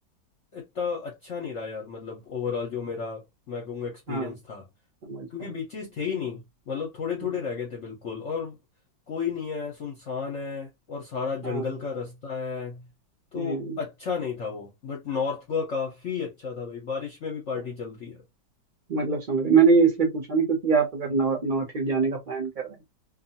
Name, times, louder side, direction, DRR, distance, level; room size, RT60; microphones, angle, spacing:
voice 1, 0.5-4.6 5.3-8.6 9.1-12.8 13.3-18.2, left 6 dB, 55° left, 0.9 m, -32 dB
voice 2, 5.0-5.5 11.4-11.7 13.3-13.8 18.9-22.5, right 5 dB, 50° right, 0.5 m, -23 dB
2.6 x 2.4 x 2.7 m
omnidirectional pair, 1.8 m